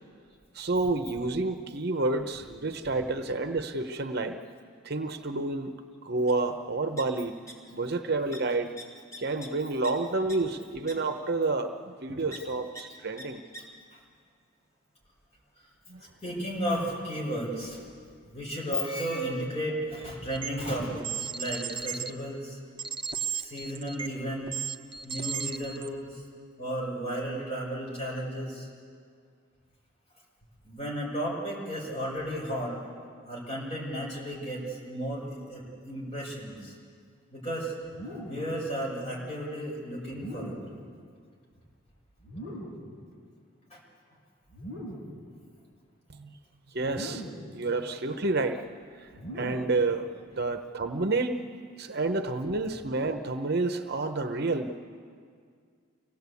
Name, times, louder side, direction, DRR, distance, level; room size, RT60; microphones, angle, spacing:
voice 1, 0.5-4.4 4.8-5.7 6.0-7.3 7.7-8.7 9.2-13.4 15.9-16.0 46.1-46.4 46.7-47.3 47.5-48.6 48.9-51.4 51.8-54.7, right 3 dB, 55° right, 7 dB, 0.9 m, -29 dB
sound 1, 6.3-6.4 6.6-7.5 7.8-8.0 8.3-8.4 8.8-9.9 10.3-10.4 10.9-11.0 12.3-12.4 12.8-12.9 13.2-13.3 13.5-13.6, equal, 15° left, 3.4 m, -44 dB
voice 2, 10.2-10.6 13.6-13.7 13.9-14.0 16.2-17.8 18.3-22.6 23.2-24.7 25.0-26.2 26.6-28.7 30.6-32.7 33.2-36.7 37.3-37.7 38.2-40.6 43.7-43.8 51.9-52.0, equal, 30° left, -3 dB, 6.0 m, -34 dB
sound 2, 20.3-20.5 21.0-22.1 22.8-24.1 24.5-25.9, right 6 dB, 25° right, 0.8 m, -34 dB
sound 3, 37.8-38.5 40.1-40.8 42.2-42.9 44.5-45.2 46.8-47.5 49.1-49.8, equal, 70° left, 6.8 m, -40 dB
25.5 x 17.5 x 8.4 m, 2.1 s
head